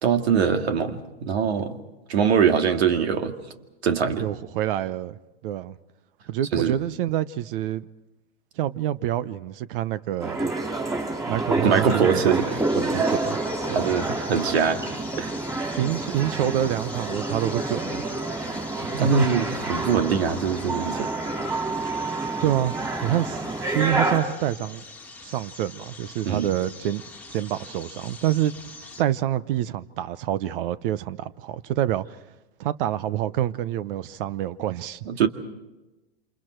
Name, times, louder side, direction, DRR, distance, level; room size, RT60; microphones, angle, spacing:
voice 1, 0.0-1.8 2.1-3.3 3.8-4.3 6.5-6.8 11.6-12.6 13.7-14.8 15.2-15.3 19.0-21.1 26.3-26.5 35.1-35.3, right 6 dB, 75° right, 2.2 m, -23 dB
voice 2, 4.2-5.8 6.3-7.9 8.6-10.5 11.3-12.4 12.8-13.4 13.7-13.9 15.8-18.0 18.8-19.3 22.4-22.7 23.0-24.8 25.2-27.0 27.3-28.5 29.0-32.0 32.6-35.1, right 12 dB, 55° right, 0.9 m, -27 dB
sound 1, 10.2-24.2, right 2 dB, 10° right, 4.8 m, -28 dB
sound 2, 11.9-29.0, left 3 dB, 5° left, 2.1 m, -43 dB
28.5 x 27.5 x 4.6 m
hypercardioid pair, 115°, 32 cm